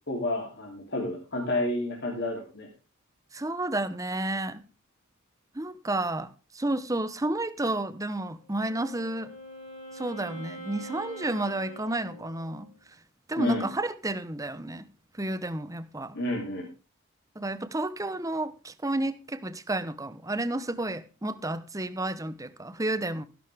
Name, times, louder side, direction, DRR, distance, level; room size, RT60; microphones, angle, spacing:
voice 1, 0.1-2.7 13.4-13.7 16.1-16.7, left 1 dB, 55° left, 3.2 m, -30 dB
voice 2, 3.3-4.6 5.5-6.3 6.5-9.3 9.9-12.7 13.3-14.8 15.2-16.1 17.4-23.3, right 2 dB, 15° right, 0.9 m, -31 dB
Wind instrument woodwind instrument, 8.4-12.7, right 1 dB, 40° left, 5.2 m, -44 dB
15.5 x 11.5 x 3.5 m
head